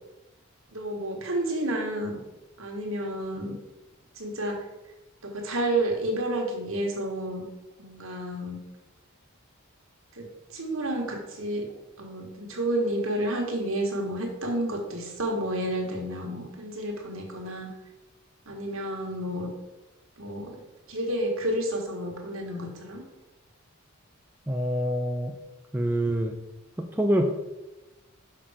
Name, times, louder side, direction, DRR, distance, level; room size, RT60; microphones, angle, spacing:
voice 1, 0.7-2.2 2.6-3.5 4.1-4.6 5.2-7.4 7.8-8.6 10.1-10.3 10.5-11.7 12.0-17.7 18.5-19.5 20.2-20.5 20.9-23.0, right 1 dB, 70° right, 1 dB, 1.6 m, -30 dB
voice 2, 24.5-25.3 25.7-26.4 26.8-27.3, equal, 10° right, 3 dB, 0.4 m, -26 dB
6.0 x 5.8 x 4.9 m, 1.0 s
head